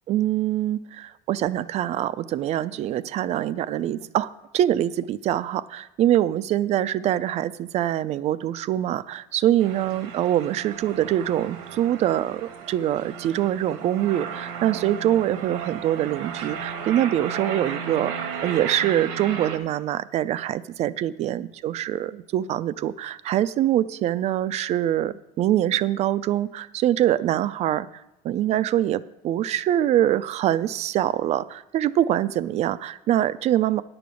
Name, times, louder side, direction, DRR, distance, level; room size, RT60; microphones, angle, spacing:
voice 1, 0.1-27.9 28.2-33.8, right 12 dB, 40° right, 16 dB, 0.4 m, -24 dB
sound 1, 9.6-19.6, right 7 dB, 90° right, 1.3 m, -35 dB
10.5 x 6.9 x 6.2 m, 0.88 s
cardioid pair, 145°, 17 cm